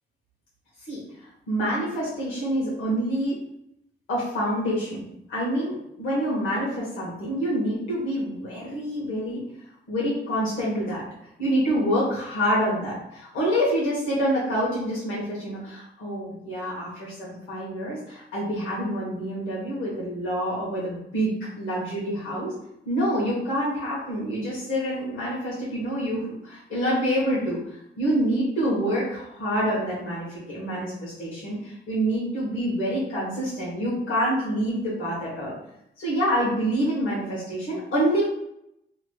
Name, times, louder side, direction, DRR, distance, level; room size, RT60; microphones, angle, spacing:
voice 1, 1.5-3.4 4.1-9.4 9.9-11.0 11.4-22.5 22.8-35.5 36.0-38.2, equal, 90° left, -7 dB, 1.2 m, -27 dB
3.2 x 2.9 x 2.2 m, 0.78 s
wide cardioid pair, 150°, 20 cm